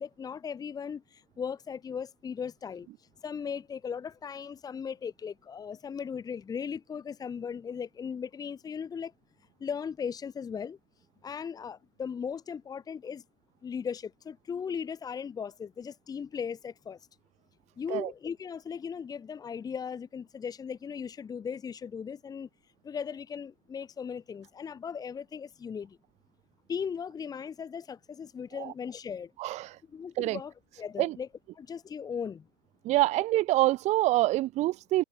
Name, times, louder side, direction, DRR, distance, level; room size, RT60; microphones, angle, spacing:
voice 1, 0.0-9.1 9.6-10.8 11.2-13.2 13.6-17.0 17.8-22.5 22.8-26.0 26.7-29.3 29.9-31.3 31.6-32.5, left 7 dB, 10° left, 3.8 m, -37 dB
voice 2, 29.4-29.8 30.2-30.4 31.0-31.2 32.8-35.0, right 17 dB, 20° right, 1.7 m, -26 dB
figure-of-eight pair, 120°, 35 cm